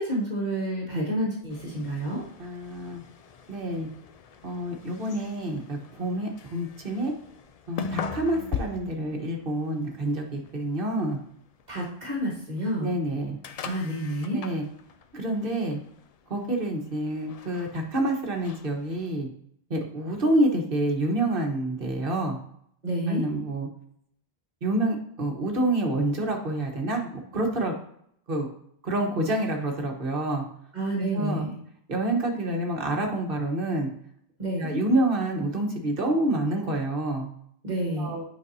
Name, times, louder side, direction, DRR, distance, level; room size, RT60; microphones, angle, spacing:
voice 1, 0.0-2.2 11.7-12.9 13.7-14.4 22.8-23.3 30.7-31.6 34.4-34.7 37.6-38.2, right 1 dB, 40° right, -4 dB, 1.8 m, -29 dB
sound 1, 1.5-19.1, left 6 dB, 55° left, 0.4 m, -42 dB
voice 2, 2.4-3.0 3.5-3.9 4.4-7.1 7.7-11.2 12.8-13.4 14.3-14.7 15.1-15.8 16.3-19.3 19.7-22.4 23.1-23.7 24.6-27.7 28.3-28.5 28.8-30.4 31.0-31.4 31.9-33.9 34.6-37.3 38.0-38.2, right 1 dB, 55° right, 1 dB, 1.5 m, -27 dB
8.5 x 5.4 x 2.7 m, 0.69 s
omnidirectional pair, 1.1 m